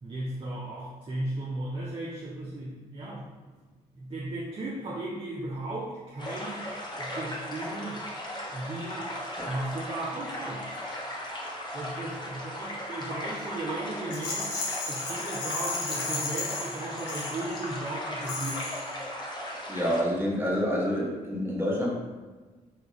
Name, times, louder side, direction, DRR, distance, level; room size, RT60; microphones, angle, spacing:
voice 1, 0.0-3.2 4.0-6.7 7.0-8.0 8.5-9.1 9.4-10.8 11.7-14.5 14.9-18.6, right 2 dB, 25° right, -5 dB, 0.6 m, -36 dB
sound 1, 6.2-20.0, equal, 20° left, 0.9 m, -37 dB
Rattle, 14.1-17.7 18.2-18.9, left 3 dB, 80° left, 0.6 m, -34 dB
voice 2, 19.7-21.9, equal, 10° right, -4 dB, 1.1 m, -27 dB
3.5 x 2.4 x 3.0 m, 1.3 s
figure-of-eight pair, 40°, 20 cm